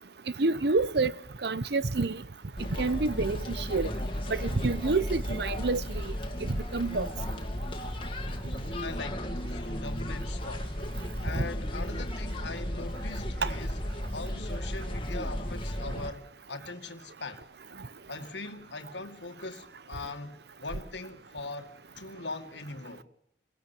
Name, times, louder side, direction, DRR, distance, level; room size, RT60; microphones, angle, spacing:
voice 1, 0.4-1.1 1.4-2.2 2.8-3.9 4.3-6.1 6.5-7.1 13.4-13.5, right 3 dB, 65° right, 0.9 m, -28 dB
sound 1, 2.6-16.1, equal, 30° left, 2.5 m, -34 dB
voice 2, 8.8-10.7 11.2-13.8 14.1-17.4 18.1-21.7 22.0-23.0, left 3 dB, 80° left, 2.2 m, -41 dB
29.5 x 17.0 x 7.2 m
head